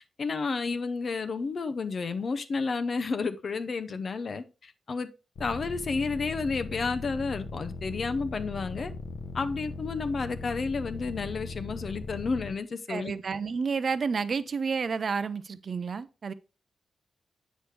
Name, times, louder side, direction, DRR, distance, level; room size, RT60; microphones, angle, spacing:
voice 1, 0.2-5.1 5.4-8.9 9.3-13.1, left 4 dB, 45° left, 0.6 m, -31 dB
sound 1, 5.4-12.5, left 3 dB, 70° left, 0.9 m, -39 dB
voice 2, 12.9-16.3, right 5 dB, 45° right, 0.5 m, -30 dB
8.3 x 6.1 x 3.2 m
wide cardioid pair, 155°, 0 cm